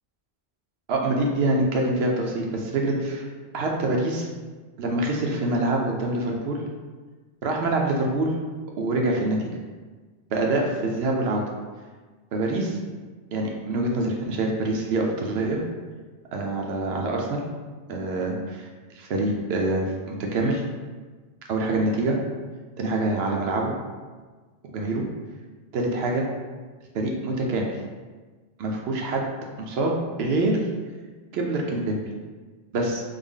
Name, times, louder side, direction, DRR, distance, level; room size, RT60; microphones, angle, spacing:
voice 1, 0.9-3.3 3.5-4.3 4.8-6.6 7.4-8.3 8.8-9.4 10.3-11.4 12.3-12.8 13.3-15.6 16.3-17.4 17.9-18.7 18.9-20.6 21.5-22.2 22.8-23.7 24.7-25.0 25.7-26.2 26.9-27.7 28.6-29.2 29.6-29.9 30.2-30.6 31.3-32.0 32.7-33.0, right 2 dB, 75° right, 0 dB, 0.8 m, -25 dB
3.4 x 2.1 x 3.6 m, 1.4 s
omnidirectional pair, 1.1 m